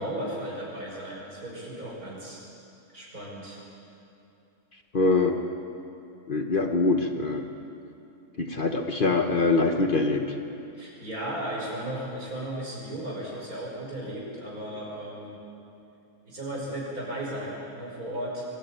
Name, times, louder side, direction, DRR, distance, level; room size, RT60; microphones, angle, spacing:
voice 1, 0.0-2.4 2.9-3.6 10.8-15.4 16.2-18.5, right 1 dB, 80° right, -3 dB, 6.0 m, -35 dB
voice 2, 4.9-5.4 6.3-7.4 8.4-10.2, left 3 dB, 40° left, 4 dB, 1.2 m, -23 dB
23.0 x 14.0 x 8.9 m, 2.8 s
omnidirectional pair, 1.5 m